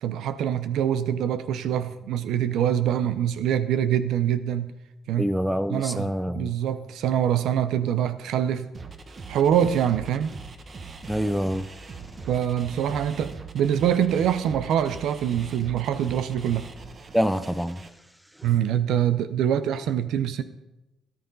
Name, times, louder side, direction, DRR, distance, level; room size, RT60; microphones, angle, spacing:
voice 1, 0.0-4.7 5.1-5.3 5.7-8.7 9.3-10.3 12.3-16.6 18.4-20.4, right 9 dB, 85° right, 0.6 m, -24 dB
voice 2, 5.2-6.5 11.1-11.7 17.1-17.8 18.4-18.5, equal, 5° right, 0.6 m, -26 dB
sound 1, 8.7-17.9, right 4 dB, 45° right, 1.2 m, -41 dB
13.5 x 11.0 x 4.0 m
cardioid pair, 90°, 0 cm